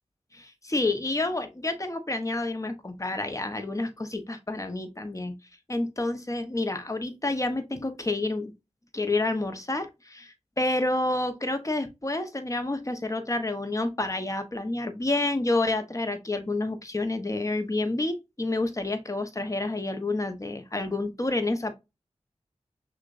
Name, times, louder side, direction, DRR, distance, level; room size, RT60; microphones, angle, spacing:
voice 1, 0.3-5.4 5.7-8.5 8.9-21.8, left 2 dB, 25° left, 1.0 m, -29 dB
6.3 x 2.5 x 2.6 m
cardioid pair, 40°, 13 cm